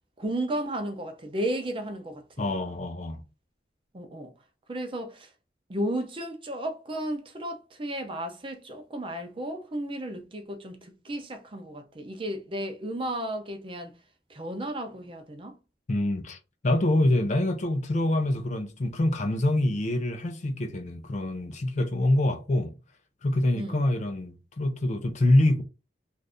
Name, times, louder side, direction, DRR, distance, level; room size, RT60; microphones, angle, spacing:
voice 1, 0.2-2.5 3.9-4.3 4.7-5.3 5.7-13.9 14.3-15.6 23.5-23.8, right 1 dB, 30° right, 0.6 m, -34 dB
voice 2, 2.4-3.2 15.9-16.4 16.6-22.7 23.2-25.6, left 1 dB, 40° left, 0.5 m, -25 dB
2.6 x 2.5 x 3.4 m
head